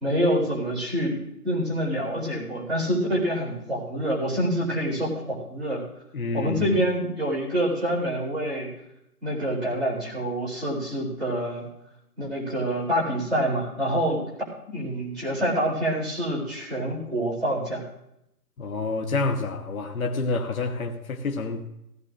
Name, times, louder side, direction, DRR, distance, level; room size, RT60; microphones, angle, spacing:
voice 1, 0.0-1.2 1.4-5.8 6.3-8.7 9.2-11.7 12.2-14.2 14.7-17.8, right 1 dB, ahead, 2.8 m, -26 dB
voice 2, 6.1-6.8 18.6-21.8, left 3 dB, 60° left, 1.2 m, -28 dB
19.5 x 16.5 x 2.5 m
hypercardioid pair, 175°, 48 cm